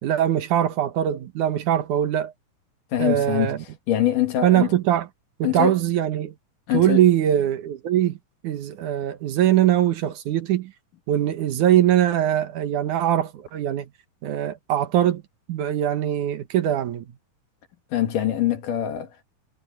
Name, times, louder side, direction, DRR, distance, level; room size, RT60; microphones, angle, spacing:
voice 1, 0.0-2.3 3.0-3.6 4.4-5.0 5.4-6.3 6.7-8.2 8.4-10.7 11.1-13.9 14.2-15.2 15.5-17.0, right 11 dB, 70° right, 2.5 m, -22 dB
voice 2, 2.9-4.8 5.4-5.8 6.7-7.0 17.9-19.2, left 12 dB, 70° left, 3.3 m, -24 dB
omnidirectional pair, 3.9 m